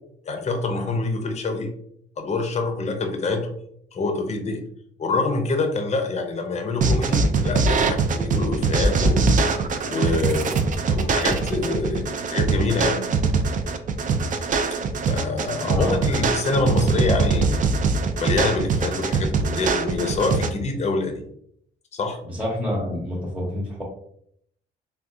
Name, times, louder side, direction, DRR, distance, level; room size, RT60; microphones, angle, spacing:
voice 1, 0.2-1.7 2.2-3.5 3.9-4.6 5.0-9.3 9.9-10.5 10.8-13.0 15.1-17.6 18.2-21.2 21.9-22.2, left 3 dB, 35° left, 5 dB, 0.6 m, -26 dB
sound 1, 6.8-20.5, right 4 dB, 40° right, 0.4 m, -22 dB
voice 2, 15.6-16.0 22.2-23.8, left 1 dB, 5° right, -4 dB, 0.9 m, -28 dB
3.5 x 2.2 x 2.5 m, 0.69 s
cardioid pair, 90°, 20 cm